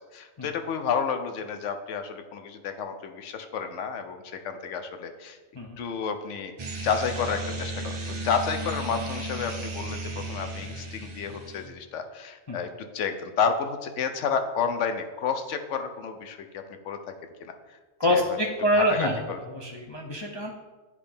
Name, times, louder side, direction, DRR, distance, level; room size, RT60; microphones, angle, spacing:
voice 1, 0.1-5.4 5.8-17.1 18.1-19.4, left 6 dB, 70° left, 7 dB, 0.9 m, -31 dB
sound 1, 6.6-11.7, right 2 dB, 35° right, 0.5 m, -35 dB
voice 2, 18.0-19.2 19.6-20.5, equal, 45° left, -1 dB, 0.3 m, -25 dB
9.8 x 3.3 x 3.4 m, 1.3 s
omnidirectional pair, 1.4 m